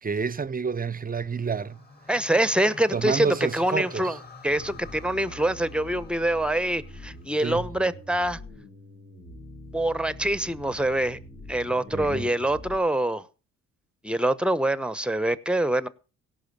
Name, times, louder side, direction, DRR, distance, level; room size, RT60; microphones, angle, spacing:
voice 1, 0.0-1.8 2.9-4.1 7.4-7.7 11.9-12.3, right 5 dB, 25° right, 0.8 m, -29 dB
sound 1, 1.2-7.5, left 3 dB, 30° left, 2.8 m, -48 dB
voice 2, 2.1-8.4 9.7-11.2 11.5-13.2 14.0-15.9, right 1 dB, 5° right, 1.0 m, -25 dB
sound 2, 4.5-12.8, left 1 dB, 75° left, 6.4 m, -44 dB
17.0 x 5.7 x 6.8 m
supercardioid pair, 55°, 34 cm